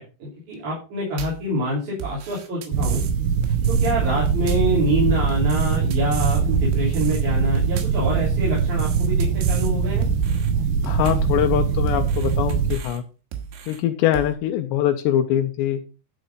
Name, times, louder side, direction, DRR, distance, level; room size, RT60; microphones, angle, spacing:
voice 1, 0.0-3.0 3.7-10.0, equal, 45° right, -7 dB, 4.5 m, -26 dB
sound 1, 1.2-1.5 2.0-3.1 3.4-3.9 4.3-4.8 5.3-6.4 6.7-7.2 7.6-8.1 8.6-9.7 10.0-10.5 10.9-11.4 11.9-13.0 13.3-13.8 14.1-14.3, right 8 dB, 85° right, 3.9 m, -34 dB
sound 2, 2.7-12.7, right 6 dB, 70° right, 3.0 m, -22 dB
voice 2, 10.8-13.0 13.7-15.8, left 11 dB, 80° left, 6 dB, 2.9 m, -23 dB
12.0 x 5.1 x 5.3 m, 0.33 s
omnidirectional pair, 5.1 m